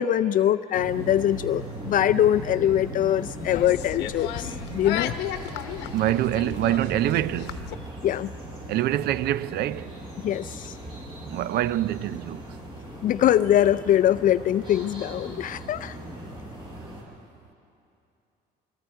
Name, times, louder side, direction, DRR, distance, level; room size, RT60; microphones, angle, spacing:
voice 1, 0.0-5.2 8.0-8.3 10.2-10.8 13.0-16.0, left 11 dB, 55° left, 0.4 m, -23 dB
sound 1, 0.7-17.0, right 1 dB, 30° right, 6.0 m, -39 dB
sound 2, 3.4-7.7, left 10 dB, 85° left, 0.9 m, -35 dB
voice 2, 4.6-5.6 5.9-7.7 8.7-10.0 11.2-12.4, right 13 dB, 70° right, 0.5 m, -26 dB
28.5 x 22.0 x 4.6 m
cardioid pair, 110°, 17 cm